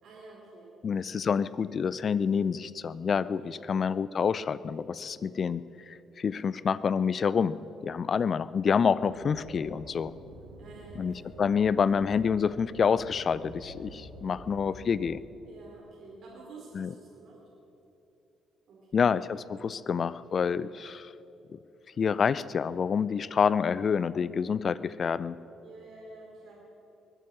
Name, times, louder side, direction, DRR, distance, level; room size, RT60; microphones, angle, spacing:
voice 1, 0.0-0.7 1.0-1.3 3.4-3.6 10.6-11.6 14.1-14.4 15.4-17.4 18.7-19.0 19.6-19.8 20.4-20.8 25.6-26.5, right 3 dB, 60° right, -4 dB, 3.3 m, -50 dB
voice 2, 0.8-5.6 5.9-7.6 7.8-10.1 11.0-15.2 16.7-16.9 18.9-21.1 22.0-25.3, left 6 dB, 45° left, 18 dB, 0.4 m, -27 dB
sound 1, 8.9-15.2, right 2 dB, 85° right, 1.5 m, -48 dB
21.5 x 9.6 x 6.4 m, 3.0 s
hypercardioid pair, 45°, 0 cm